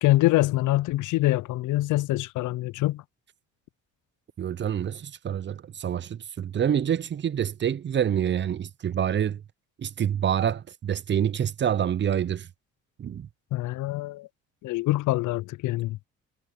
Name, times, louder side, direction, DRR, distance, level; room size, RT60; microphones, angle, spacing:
voice 1, 0.0-3.0 13.5-14.3 14.6-16.0, left 17 dB, 80° left, 0.5 m, -25 dB
voice 2, 4.4-9.4 9.8-12.5 13.0-13.3, right 9 dB, 40° right, 0.5 m, -27 dB
cardioid pair, 90°, 30 cm